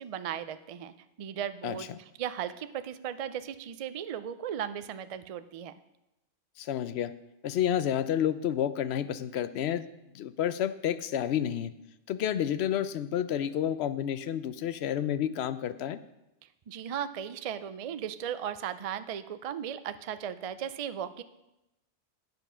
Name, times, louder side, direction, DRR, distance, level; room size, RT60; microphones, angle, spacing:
voice 1, 0.0-1.9 2.2-5.7 16.7-21.2, right 9 dB, 70° right, 12 dB, 0.3 m, -36 dB
voice 2, 1.6-2.0 6.6-7.1 7.4-9.9 10.1-11.7 12.1-16.0, left 10 dB, 70° left, 13 dB, 0.8 m, -30 dB
9.4 x 7.1 x 5.6 m, 0.91 s
omnidirectional pair, 1.2 m